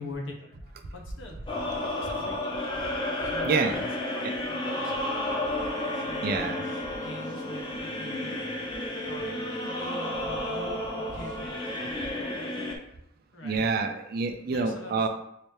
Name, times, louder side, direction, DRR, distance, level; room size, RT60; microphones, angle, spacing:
voice 1, 0.0-2.6 3.2-3.8 4.1-5.2 5.8-8.5 8.7-12.1 13.3-13.7 14.4-15.1, left 2 dB, 75° left, 2 dB, 0.7 m, -44 dB
sound 1, 1.5-12.8, left 1 dB, 25° left, 0.5 m, -32 dB
voice 2, 3.4-3.9 4.2-4.3 6.2-6.6 13.4-15.1, right 4 dB, 50° right, 7 dB, 0.4 m, -27 dB
Wind instrument woodwind instrument, 5.0-11.7, equal, 10° right, 1.0 m, -48 dB
3.2 x 2.9 x 3.1 m, 0.78 s
head